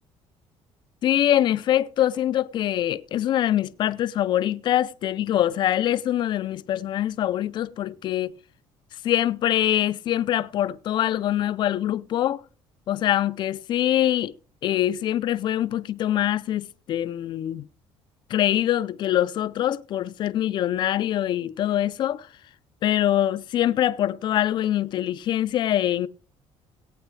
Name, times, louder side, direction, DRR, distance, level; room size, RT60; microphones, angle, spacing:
voice 1, 1.0-8.3 9.0-12.4 12.9-14.3 14.6-17.7 18.3-22.3 22.8-26.1, left 12 dB, 45° left, 0.5 m, -24 dB
18.5 x 9.1 x 3.2 m
cardioid pair, 165°, 11 cm